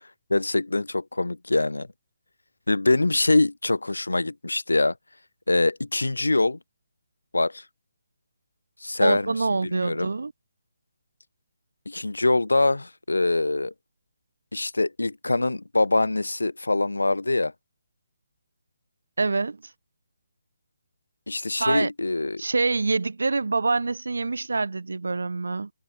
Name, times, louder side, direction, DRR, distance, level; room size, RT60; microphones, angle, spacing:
voice 1, 0.3-1.9 2.7-4.9 5.5-6.6 7.3-7.6 8.8-9.3 9.6-10.1 11.9-13.7 14.5-17.5 21.3-22.4, left 2 dB, 80° left, 0.5 m, -24 dB
voice 2, 9.0-10.3 19.2-19.6 21.6-21.9 22.4-25.7, right 3 dB, 70° right, 0.8 m, -25 dB
figure-of-eight pair, 145°, 0 cm